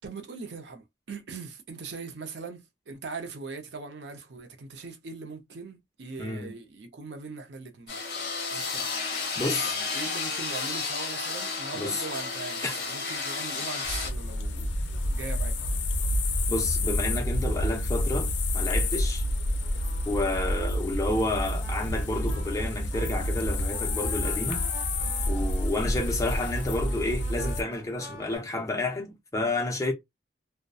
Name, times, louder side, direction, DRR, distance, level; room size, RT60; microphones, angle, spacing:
voice 1, 0.0-8.0 8.5-8.9 9.6-15.6, right 4 dB, 70° right, 0.5 m, -41 dB
voice 2, 6.2-6.5 9.4-9.8 11.7-12.0 12.6-12.8 16.5-19.2 20.1-24.7 25.3-29.9, left 2 dB, 15° left, 0.5 m, -30 dB
sound 1, 7.9-14.1, left 4 dB, 60° left, 0.9 m, -32 dB
sound 2, 13.8-27.6, left 1 dB, 75° left, 0.5 m, -28 dB
sound 3, 18.6-28.4, right 1 dB, 10° right, 0.8 m, -47 dB
2.6 x 2.1 x 2.2 m
head